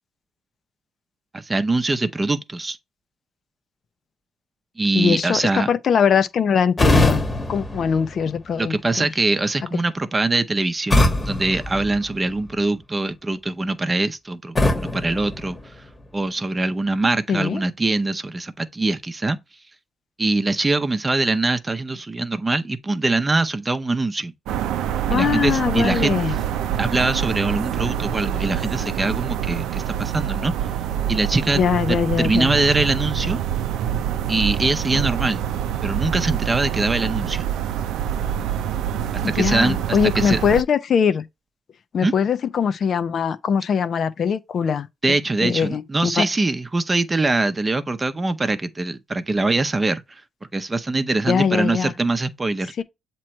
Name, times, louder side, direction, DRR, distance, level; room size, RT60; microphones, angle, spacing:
voice 1, 1.3-2.8 4.8-5.7 8.6-15.7 16.1-19.4 20.2-24.3 25.1-26.2 26.8-30.5 31.1-31.6 32.2-33.4 34.3-35.4 35.8-37.5 39.2-40.4 42.0-42.1 45.0-50.2 50.5-52.7, right 2 dB, 25° right, 0.8 m, -23 dB
voice 2, 4.9-9.1 17.3-17.6 25.1-26.4 31.6-32.5 39.2-41.3 41.9-44.9 45.4-46.3 51.3-51.9 52.8-52.9, left 7 dB, 55° left, 0.6 m, -21 dB
sound 1, 6.8-8.7 10.9-12.6 14.5-16.2, left 1 dB, 25° left, 1.2 m, -23 dB
sound 2, 24.5-40.6, right 10 dB, 85° right, 0.5 m, -26 dB
7.5 x 3.1 x 4.3 m
cardioid pair, 90°, 0 cm